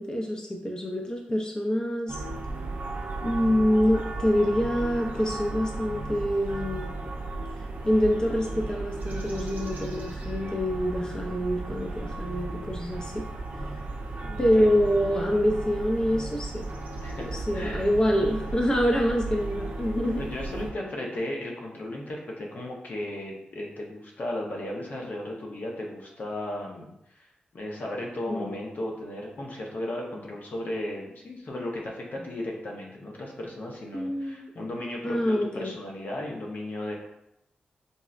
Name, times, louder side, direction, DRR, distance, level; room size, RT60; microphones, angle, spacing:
voice 1, 0.0-2.2 3.2-6.9 7.8-13.2 14.4-16.7 17.3-20.2 28.3-28.6 33.9-34.5 35.0-35.7, equal, 25° left, 0 dB, 0.5 m, -26 dB
sound 1, 2.1-20.7, right 2 dB, 70° right, 0.5 m, -35 dB
voice 2, 14.1-14.7 17.0-17.3 17.5-17.9 20.2-27.3 27.5-36.9, left 1 dB, 60° left, -1 dB, 0.7 m, -35 dB
3.9 x 2.0 x 2.4 m, 0.82 s
cardioid pair, 60°, 3 cm